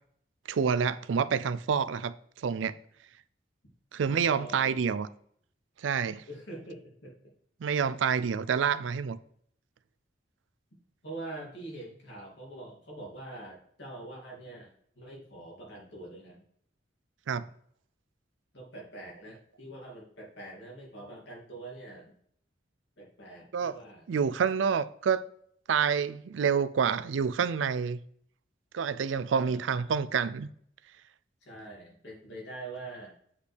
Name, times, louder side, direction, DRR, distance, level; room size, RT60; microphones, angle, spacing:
voice 1, 0.5-2.7 3.9-5.1 5.8-6.2 7.6-9.2 17.3-17.4 23.5-23.8 24.1-25.2 25.7-28.0 28.7-30.5, right 6 dB, 85° right, 0.4 m, -28 dB
voice 2, 4.0-4.8 6.3-7.1 11.0-16.4 18.5-22.1 23.0-24.0 29.3-29.9 31.4-33.1, right 2 dB, 65° left, 2.6 m, -44 dB
8.3 x 5.2 x 3.4 m
head